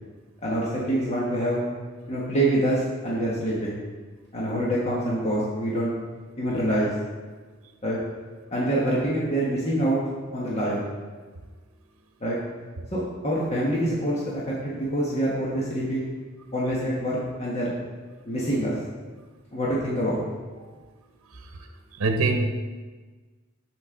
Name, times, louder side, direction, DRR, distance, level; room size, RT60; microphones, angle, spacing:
voice 1, 0.4-1.6 2.1-3.8 4.3-5.9 6.4-6.9 7.8-8.0 8.5-10.0 10.3-10.8 12.2-12.4 12.9-16.1 16.5-17.8 18.2-18.7 19.5-20.2, right 1 dB, 30° left, -6 dB, 1.4 m, -25 dB
voice 2, 21.3-21.7 22.0-22.5, right 3 dB, 85° right, 4 dB, 0.8 m, -25 dB
12.5 x 5.2 x 3.8 m, 1.4 s
head